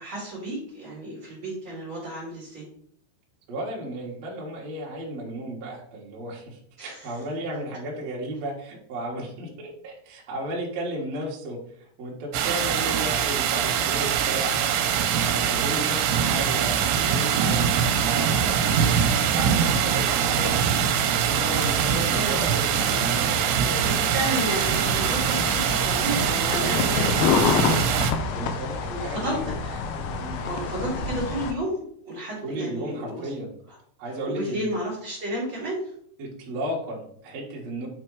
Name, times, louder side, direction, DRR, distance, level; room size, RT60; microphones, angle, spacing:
voice 1, 0.0-2.7 6.8-7.1 22.1-22.4 23.8-27.8 28.1-28.3 28.9-29.8 30.4-31.8 32.0-33.3 34.3-35.9, right 1 dB, 35° right, -7 dB, 2.2 m, -32 dB
voice 2, 3.5-14.6 15.3-20.6 21.2-24.0 25.6-25.8 28.3-29.5 30.2-30.4 32.4-33.5 34.0-34.7 36.2-37.9, right 1 dB, 55° right, -3 dB, 1.9 m, -34 dB
sound 1, 12.3-28.1, right 8 dB, 80° right, 2.9 m, -23 dB
sound 2, 24.3-31.5, left 6 dB, 80° left, 2.4 m, -28 dB
8.8 x 3.4 x 4.7 m, 0.64 s
omnidirectional pair, 5.2 m